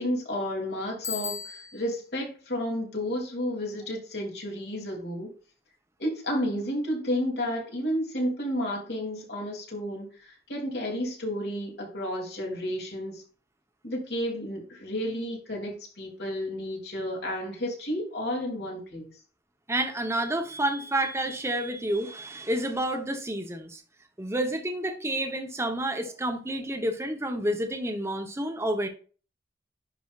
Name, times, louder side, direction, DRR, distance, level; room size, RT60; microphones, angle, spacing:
voice 1, 0.0-5.3 6.0-13.2 13.8-19.1, equal, 65° left, -1 dB, 3.0 m, -31 dB
Bicycle bell, 1.0-2.0, left 7 dB, 15° left, 1.7 m, -35 dB
voice 2, 19.7-23.8 24.2-28.9, right 1 dB, 15° right, 4 dB, 1.0 m, -29 dB
10.5 x 5.3 x 2.5 m, 0.37 s
head